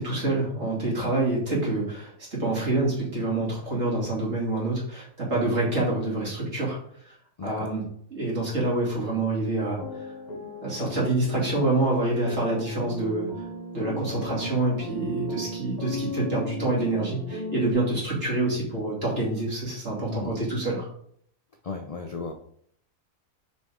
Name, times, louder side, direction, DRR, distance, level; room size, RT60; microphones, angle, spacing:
voice 1, 0.0-6.8 7.1-7.2 7.4-7.8 8.1-9.8 10.6-13.3 13.7-20.9, right 2 dB, 50° right, -5 dB, 2.9 m, -27 dB
voice 2, 7.4-7.7 20.1-20.3 21.6-22.3, left 4 dB, 65° left, 4 dB, 0.3 m, -34 dB
sound 1, 9.8-17.7, left 1 dB, 30° left, 1.2 m, -36 dB
6.2 x 5.5 x 3.6 m, 0.65 s
omnidirectional pair, 1.5 m